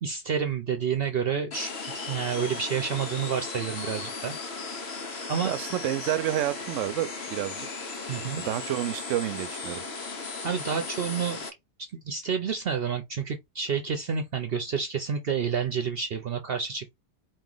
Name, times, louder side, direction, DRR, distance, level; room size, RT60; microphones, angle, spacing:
voice 1, 0.0-4.4 5.3-5.5 8.1-8.4 10.4-11.4 11.8-16.9, right 7 dB, 55° right, 0.8 m, -29 dB
sound 1, 1.5-11.5, left 4 dB, 60° left, 1.4 m, -36 dB
voice 2, 5.4-7.7 8.4-9.8, right 13 dB, 85° right, 0.9 m, -29 dB
4.6 x 3.0 x 3.8 m
omnidirectional pair, 1.3 m